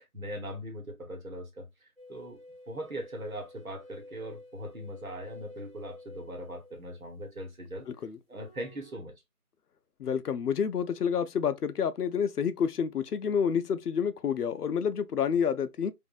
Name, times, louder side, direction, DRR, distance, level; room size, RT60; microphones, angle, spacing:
voice 1, 0.0-2.4 2.7-7.9 8.3-9.1, equal, 60° right, 1.1 m, -40 dB
sound 1, 2.0-7.5 8.3-9.0, left 1 dB, 40° right, 0.6 m, -51 dB
voice 2, 7.9-8.2 10.0-15.9, left 7 dB, 75° left, 0.5 m, -29 dB
2.5 x 2.3 x 2.5 m
figure-of-eight pair, 180°, 46 cm